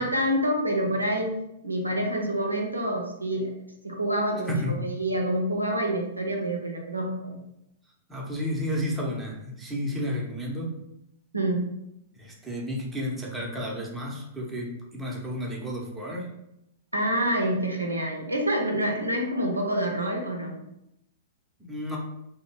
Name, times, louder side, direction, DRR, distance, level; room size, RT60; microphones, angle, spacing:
voice 1, 0.0-1.3 1.6-3.5 3.8-7.4 11.3-11.7 16.9-20.6, right 1 dB, 85° right, 1 dB, 0.5 m, -27 dB
voice 2, 8.1-10.8 12.2-16.3 21.6-22.0, equal, 10° right, -3 dB, 0.6 m, -32 dB
2.8 x 2.0 x 2.9 m, 0.82 s
figure-of-eight pair, 105°, 0 cm